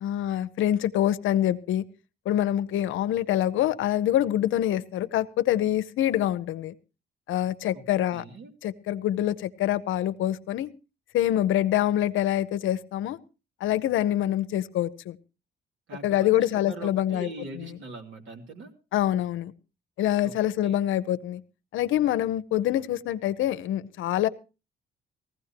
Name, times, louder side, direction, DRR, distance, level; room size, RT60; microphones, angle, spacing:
voice 1, 0.0-1.8 2.3-6.7 7.3-8.2 8.6-10.7 11.1-13.2 13.6-15.2 16.0-17.3 17.6-17.7 18.9-19.5 20.0-21.4 21.7-24.3, left 12 dB, 80° left, 14 dB, 0.7 m, -25 dB
voice 2, 8.1-8.5 15.9-18.7 20.2-20.3 20.6-20.8, right 3 dB, 70° right, 3 dB, 2.8 m, -42 dB
19.0 x 15.5 x 2.9 m, 0.31 s
cardioid pair, 90°, 20 cm